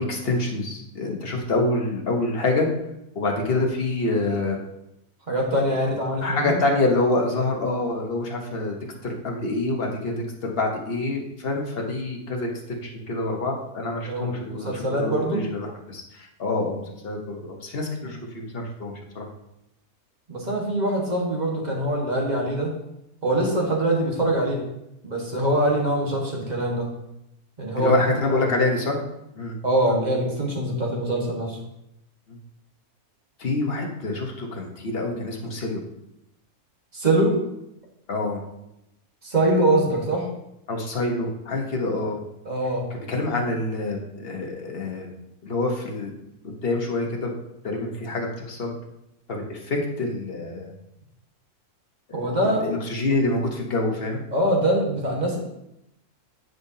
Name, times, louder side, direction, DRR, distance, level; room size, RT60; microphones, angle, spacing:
voice 1, 0.0-2.7 3.1-4.6 6.2-8.8 9.0-10.1 10.4-19.2 27.8-29.0 29.3-29.6 32.3-32.4 33.4-35.8 38.1-38.4 40.7-42.2 43.1-45.1 45.4-46.1 46.6-47.3 47.6-48.7 49.3-50.7 52.1-54.2, left 2 dB, 40° left, 1 dB, 1.3 m, -26 dB
voice 2, 5.3-6.6 14.1-15.4 18.0-18.1 20.3-22.7 23.2-24.6 25.0-26.9 27.6-27.9 28.3-28.4 29.6-31.6 36.9-37.4 39.2-40.3 42.4-42.8 52.1-52.6 54.3-55.4, right 1 dB, 30° right, -1 dB, 1.5 m, -23 dB
9.4 x 5.1 x 2.8 m, 0.85 s
omnidirectional pair, 1.6 m